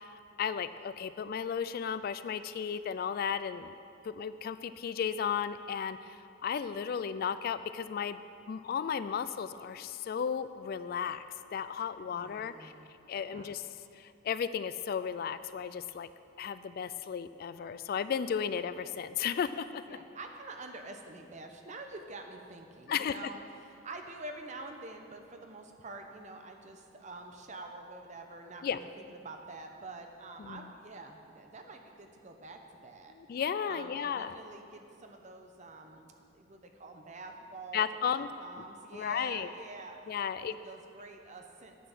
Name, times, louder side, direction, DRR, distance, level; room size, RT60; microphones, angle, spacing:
voice 1, 0.1-3.7 4.0-8.2 8.5-11.2 11.5-12.7 13.1-13.7 13.9-16.1 16.4-19.8 22.9-23.1 28.6-28.8 30.4-30.7 33.1-34.4 37.7-38.3 38.9-39.5 40.1-40.6, left 7 dB, 50° left, 13 dB, 0.3 m, -34 dB
voice 2, 12.1-13.6 19.9-33.1 33.7-40.0 40.4-41.8, right 2 dB, 40° right, 4 dB, 0.8 m, -47 dB
10.0 x 7.7 x 6.1 m, 2.5 s
head